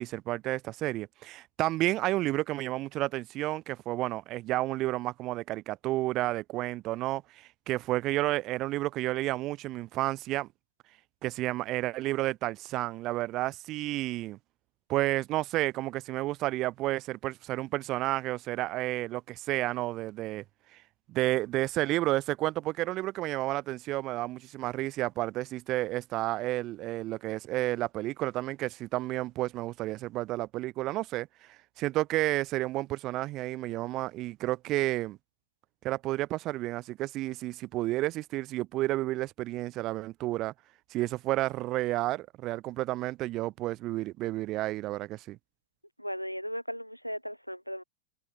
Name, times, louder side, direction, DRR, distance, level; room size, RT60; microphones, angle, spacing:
voice 1, 0.0-10.5 11.2-14.4 14.9-20.4 21.1-35.2 35.8-40.5 40.9-45.4, right 17 dB, 35° right, 0.7 m, -31 dB
voice 2, 46.0-47.8, equal, 90° left, 0.9 m, -36 dB
figure-of-eight pair, 90°, 0 cm